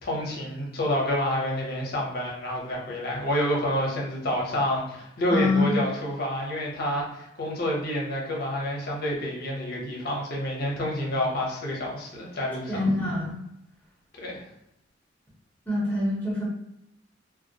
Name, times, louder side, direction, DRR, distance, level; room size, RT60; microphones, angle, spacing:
voice 1, 0.0-12.8 14.2-14.4, left 1 dB, 55° left, -3 dB, 0.7 m, -28 dB
voice 2, 5.3-5.8 12.7-13.4 15.7-16.5, left 2 dB, 10° left, -7 dB, 0.7 m, -25 dB
2.2 x 2.0 x 2.7 m, 0.81 s
head